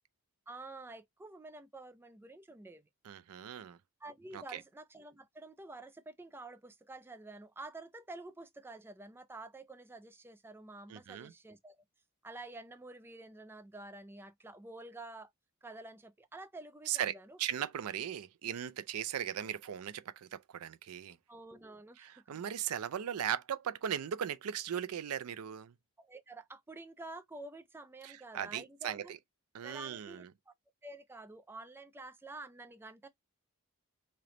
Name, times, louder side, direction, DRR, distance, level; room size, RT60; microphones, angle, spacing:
voice 1, 0.5-2.9 4.0-11.8 12.2-15.3 15.6-17.4 21.3-22.4 26.0-29.1 29.6-30.5 30.8-33.1, right 2 dB, 10° right, 0.3 m, -49 dB
voice 2, 3.0-3.8 4.3-4.6 10.9-11.3 16.9-21.2 22.0-25.7 28.0-29.2 29.5-30.3, right 9 dB, 85° right, 0.4 m, -38 dB
3.2 x 2.9 x 3.7 m
head